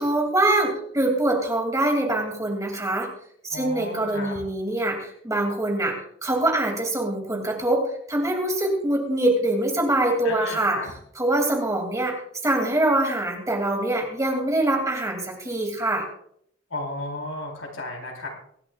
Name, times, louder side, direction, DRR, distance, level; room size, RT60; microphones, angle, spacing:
voice 1, 0.0-3.1 3.5-6.0 6.2-7.8 8.1-10.8 11.2-12.1 12.4-16.1, right 1 dB, 15° right, 1 dB, 2.7 m, -24 dB
voice 2, 3.5-4.4 10.2-10.9 16.7-18.3, left 2 dB, 75° left, 0 dB, 4.0 m, -34 dB
24.0 x 11.0 x 2.5 m, 0.68 s
head